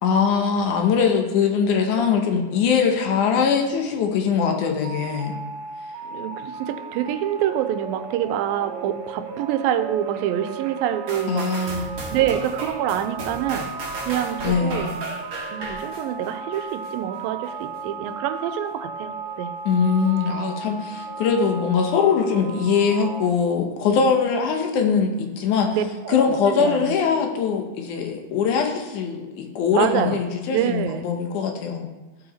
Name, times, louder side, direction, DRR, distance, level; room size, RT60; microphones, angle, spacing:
voice 1, 0.0-5.3 11.3-11.9 14.4-15.0 19.7-25.7 26.1-31.9, left 6 dB, 70° left, 3 dB, 2.2 m, -22 dB
sound 1, 4.8-23.3, right 4 dB, 65° right, 1.8 m, -35 dB
voice 2, 6.0-13.8 14.0-15.0 15.5-19.5 25.7-27.0 29.7-30.2 30.5-31.0, right 11 dB, 85° right, 10 dB, 2.3 m, -26 dB
sound 2, 11.1-16.9 17.4-17.5, right 2 dB, 45° right, 1.8 m, -35 dB
15.5 x 5.7 x 4.2 m, 1.1 s
omnidirectional pair, 4.2 m